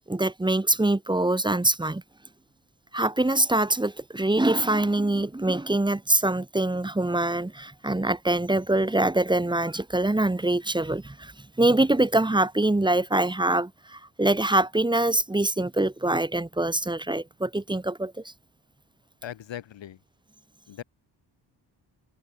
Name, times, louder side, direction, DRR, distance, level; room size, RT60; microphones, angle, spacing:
voice 1, 0.1-2.0 2.9-11.3 11.6-18.1, right 2 dB, 10° right, 1.0 m, -24 dB
voice 2, 19.2-20.0 20.7-20.8, left 11 dB, 90° left, 3.4 m, -39 dB
cardioid pair, 105°, 43 cm